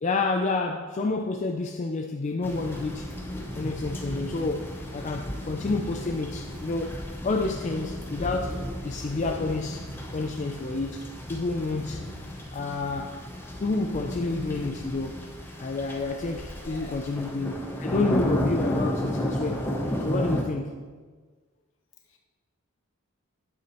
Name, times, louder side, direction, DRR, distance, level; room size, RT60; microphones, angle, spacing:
voice 1, 0.0-3.1 3.5-11.0 11.3-12.1 12.5-13.2 13.6-15.2 15.6-19.7 20.0-20.7, left 3 dB, 35° left, 3 dB, 0.4 m, -29 dB
sound 1, 2.4-20.4, equal, 10° left, 0.8 m, -33 dB
voice 2, 16.5-17.1 22.1-22.2, left 3 dB, 60° left, 2 dB, 1.1 m, -47 dB
9.7 x 8.0 x 3.0 m, 1.4 s
head